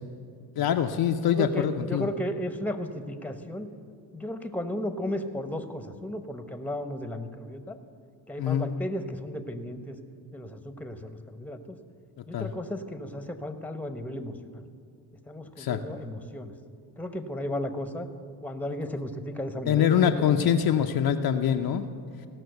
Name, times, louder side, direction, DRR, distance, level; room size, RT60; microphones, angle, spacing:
voice 1, 0.6-2.1 8.4-8.7 12.3-12.5 15.6-15.8 19.7-21.9, left 9 dB, 50° left, 5 dB, 0.7 m, -24 dB
voice 2, 1.3-3.7 4.1-7.8 8.3-10.0 10.3-11.8 12.3-14.6 15.3-16.5 17.0-18.1 18.4-20.4, left 1 dB, 5° left, 8 dB, 1.0 m, -34 dB
16.5 x 6.1 x 8.0 m, 2.3 s
hypercardioid pair, 55°, 48 cm